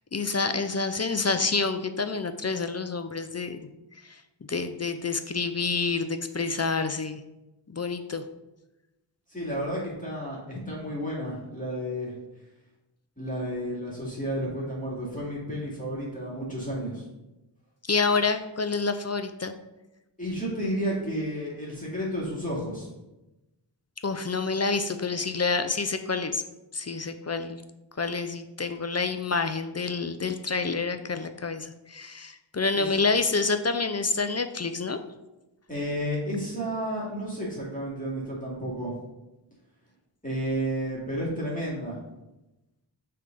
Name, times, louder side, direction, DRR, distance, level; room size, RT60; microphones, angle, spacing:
voice 1, 0.1-3.7 4.0-4.2 4.5-7.2 7.7-8.2 17.8-19.5 24.0-26.4 26.7-27.6 28.0-35.0, left 4 dB, 35° left, 9 dB, 0.5 m, -28 dB
voice 2, 9.3-12.1 13.2-17.0 20.2-22.9 32.7-32.9 35.7-38.9 40.2-42.0, equal, 20° left, -6 dB, 2.2 m, -31 dB
6.5 x 3.4 x 5.3 m, 0.98 s
wide cardioid pair, 45°, 45 cm